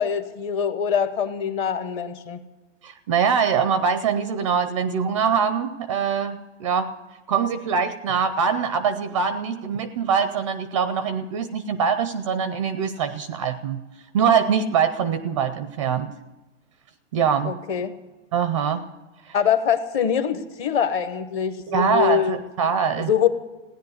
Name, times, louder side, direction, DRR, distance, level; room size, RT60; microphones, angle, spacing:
voice 1, 0.0-2.4 17.4-17.9 19.3-22.4 23.1-23.3, left 8 dB, 25° left, 10 dB, 0.8 m, -23 dB
voice 2, 2.8-6.9 7.3-13.8 14.1-16.1 17.1-17.6 18.3-18.8 19.3-19.4 21.7-23.1, right 6 dB, 25° right, 12 dB, 0.4 m, -23 dB
17.0 x 10.5 x 8.0 m, 1.1 s
hypercardioid pair, 160°, 37 cm